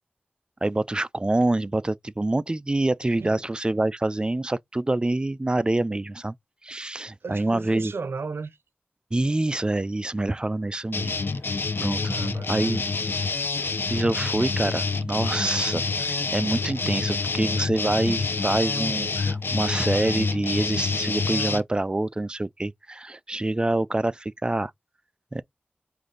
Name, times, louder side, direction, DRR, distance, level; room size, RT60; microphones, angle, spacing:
voice 1, 0.6-6.3 6.6-7.9 9.1-11.1 11.8-12.0 12.5-12.8 13.9-24.7 25.3-25.4, right 2 dB, 25° right, 0.3 m, -26 dB
voice 2, 7.2-8.6 12.0-12.8 16.8-17.1, right 4 dB, 90° right, 0.6 m, -35 dB
sound 1, 10.9-21.6, left 4 dB, 65° left, 0.5 m, -27 dB
4.9 x 2.5 x 3.9 m
wide cardioid pair, 70°, 4 cm